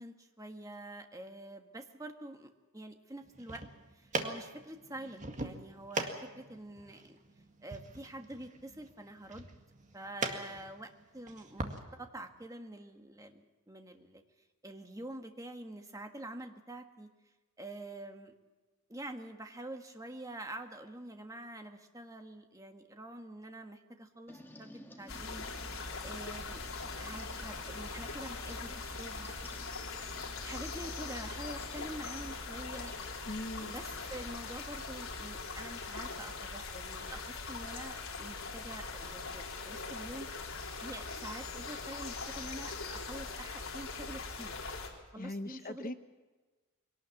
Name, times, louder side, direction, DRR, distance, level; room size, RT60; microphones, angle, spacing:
voice 1, 0.0-3.6 3.9-7.2 7.6-9.5 9.9-14.2 14.6-17.1 17.6-18.3 18.9-25.4 26.0-26.6 27.0-29.3 30.4-32.9 33.6-40.3 40.8-44.6 45.1-45.9, right 1 dB, 15° right, 5 dB, 1.5 m, -46 dB
sound 1, 3.2-11.8, right 2 dB, 35° right, 1.9 m, -41 dB
sound 2, 24.3-34.1, left 1 dB, 10° left, 1.7 m, -56 dB
sound 3, 25.1-44.9, left 4 dB, 70° left, 3.5 m, -41 dB
voice 2, 33.3-33.7 45.2-45.9, left 1 dB, 40° left, 10 dB, 0.9 m, -40 dB
23.0 x 18.0 x 7.2 m, 1.3 s
head